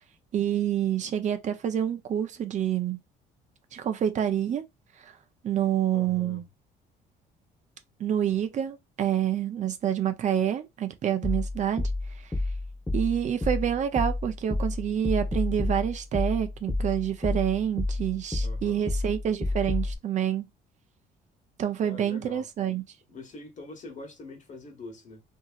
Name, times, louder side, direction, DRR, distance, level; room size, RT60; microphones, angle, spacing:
voice 1, 0.3-3.0 3.7-4.6 5.0-5.1 5.4-6.4 8.0-11.9 12.2-12.3 12.9-20.5 21.6-22.8, right 10 dB, 45° right, 0.5 m, -27 dB
voice 2, 5.9-6.5 18.4-18.9 21.8-22.5 23.1-25.2, left 2 dB, 45° left, 1.1 m, -44 dB
sound 1, 11.2-20.0, left 2 dB, 10° left, 0.9 m, -30 dB
2.9 x 2.7 x 2.3 m
cardioid pair, 110°, 17 cm